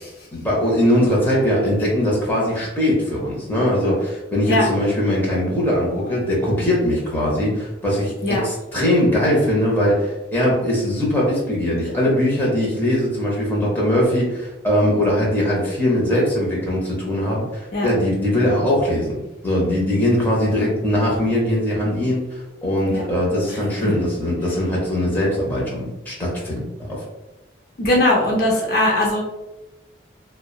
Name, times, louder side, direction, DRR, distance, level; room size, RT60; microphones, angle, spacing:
voice 1, 0.3-27.0, left 1 dB, 10° left, -5 dB, 0.6 m, -21 dB
voice 2, 23.5-23.9 27.8-29.2, left 1 dB, 50° left, -2 dB, 0.5 m, -20 dB
2.8 x 2.1 x 2.3 m, 1.0 s
head